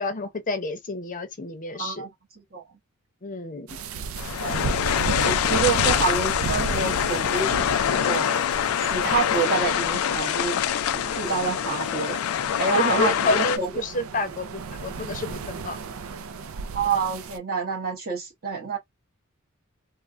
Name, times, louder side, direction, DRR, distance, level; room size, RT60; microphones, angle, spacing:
voice 1, 0.0-2.0 3.2-3.8 12.7-15.8, left 3 dB, 40° left, 0.7 m, -29 dB
voice 2, 1.8-2.1 2.5-2.6 4.4-4.8 5.2-8.4 8.9-10.6 10.9-12.2 12.6-13.7 16.7-18.8, right 5 dB, 45° right, 1.2 m, -27 dB
sound 1, 3.7-17.4, right 4 dB, 70° right, 0.4 m, -35 dB
sound 2, 4.2-13.6, left 9 dB, 80° left, 0.4 m, -25 dB
3.3 x 2.1 x 2.4 m
head